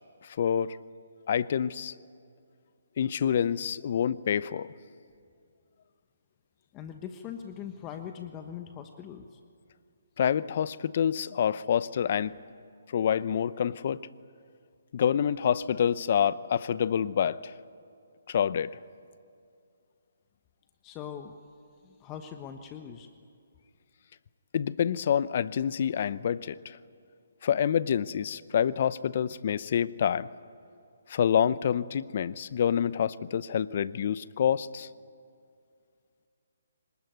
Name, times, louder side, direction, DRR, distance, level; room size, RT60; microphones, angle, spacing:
voice 1, 0.2-0.8 1.3-1.9 3.0-4.7 10.2-12.4 12.9-14.0 14.9-17.5 18.3-18.8 24.5-26.8 27.4-30.3 31.1-34.9, left 8 dB, 50° left, 17 dB, 0.7 m, -27 dB
voice 2, 6.7-9.4 20.8-21.3 21.8-23.1, left 8 dB, 20° left, 6 dB, 1.2 m, -41 dB
25.0 x 19.5 x 9.5 m, 2.4 s
hypercardioid pair, 150°, 0 cm